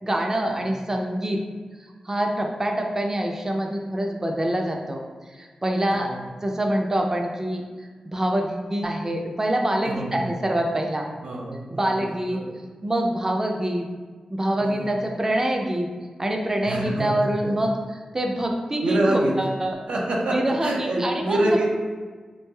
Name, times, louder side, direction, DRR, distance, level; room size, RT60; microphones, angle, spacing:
voice 1, 0.0-1.4 1.8-6.1 6.4-7.6 8.0-11.0 11.7-12.4 12.8-13.9 14.3-15.9 16.2-19.8 20.3-21.6, right 1 dB, 25° right, 2 dB, 0.3 m, -25 dB
voice 2, 5.9-6.3 9.9-10.4 11.2-12.0 12.3-12.5 14.6-14.9 16.7-17.1 17.4-17.5 18.8-19.4 19.9-21.6, right 1 dB, 90° right, -2 dB, 0.5 m, -26 dB
3.1 x 2.5 x 2.2 m, 1.5 s
cardioid pair, 60°, 2 cm